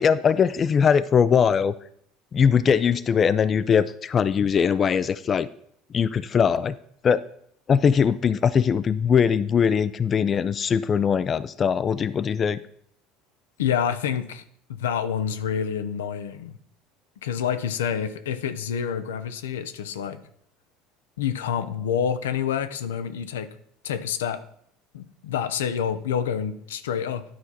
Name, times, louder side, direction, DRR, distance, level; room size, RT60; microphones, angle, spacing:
voice 1, 0.0-1.7 2.3-5.5 5.9-6.8 7.0-7.2 7.7-12.6, left 7 dB, 35° left, 15 dB, 0.4 m, -21 dB
voice 2, 13.6-14.4 14.7-16.5 17.2-20.2 21.2-23.5 23.8-24.4 24.9-27.2, left 8 dB, 85° left, 11 dB, 0.6 m, -27 dB
10.5 x 4.5 x 4.1 m, 0.67 s
hypercardioid pair, 80°, 0 cm